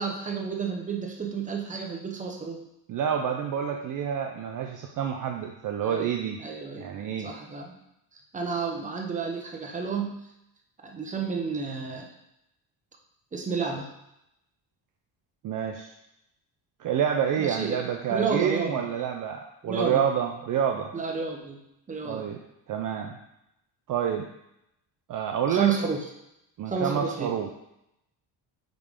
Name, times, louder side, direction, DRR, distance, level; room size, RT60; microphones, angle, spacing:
voice 1, 0.0-2.6 5.8-6.1 6.4-6.9 7.2-7.8 8.3-10.2 10.8-12.1 13.3-13.9 17.4-18.8 19.6-20.0 20.9-21.6 21.9-22.3 25.5-26.1 26.7-27.3, right 5 dB, 15° right, 1 dB, 0.8 m, -31 dB
voice 2, 2.9-6.4 6.8-7.3 15.4-15.9 16.8-20.9 22.0-22.4 22.7-23.2 23.9-24.3 25.1-25.7 26.6-27.5, right 8 dB, 45° right, 3 dB, 0.5 m, -28 dB
9.0 x 3.3 x 3.7 m, 0.84 s
cardioid pair, 140°, 44 cm